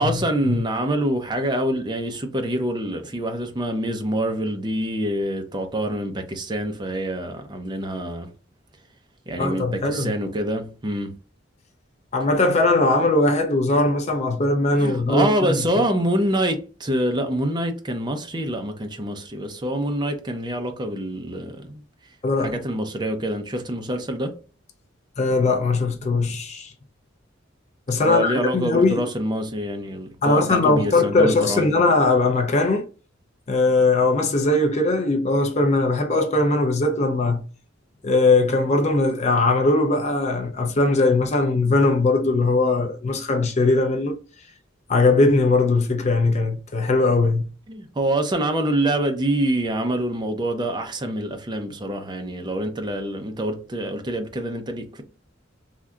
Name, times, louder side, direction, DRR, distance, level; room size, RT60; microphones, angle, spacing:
voice 1, 0.0-8.3 9.3-11.1 14.8-21.8 22.4-24.3 28.0-31.7 47.7-55.0, right 1 dB, 25° right, 0.6 m, -26 dB
voice 2, 9.4-10.1 12.1-15.6 22.2-22.6 25.2-26.7 27.9-29.1 30.2-32.8 33.5-37.4 38.0-44.2 44.9-47.5, left 2 dB, 35° left, 0.5 m, -20 dB
3.5 x 2.7 x 2.3 m
head